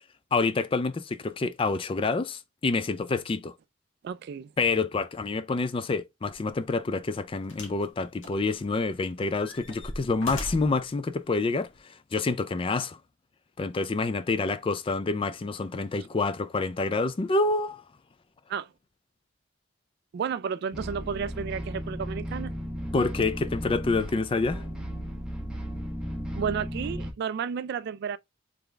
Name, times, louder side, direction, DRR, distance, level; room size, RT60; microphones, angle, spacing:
voice 1, 0.3-3.5 4.6-13.0 13.6-17.8 22.9-24.6, left 3 dB, 25° left, 0.4 m, -27 dB
voice 2, 4.0-4.5 18.5-18.7 20.1-22.5 26.4-28.2, right 7 dB, 55° right, 0.3 m, -32 dB
sound 1, 6.3-6.5 7.5-7.9 8.2-8.9 9.3-10.8 11.7-11.8, left 1 dB, 75° left, 1.4 m, -39 dB
sound 2, 20.7-27.1, equal, 5° right, 0.9 m, -35 dB
3.8 x 3.5 x 3.3 m
head